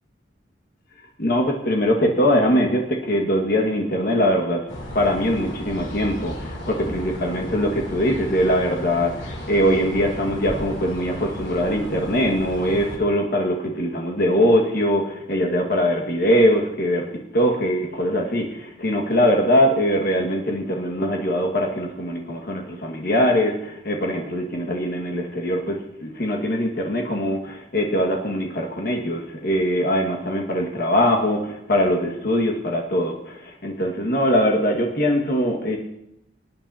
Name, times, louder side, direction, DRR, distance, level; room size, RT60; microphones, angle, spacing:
voice 1, 1.2-4.7 4.9-35.8, equal, 50° left, 1 dB, 1.8 m, -22 dB
sound 1, 4.7-13.0, left 1 dB, 65° left, 3.0 m, -34 dB
25.0 x 8.9 x 2.8 m, 0.84 s
head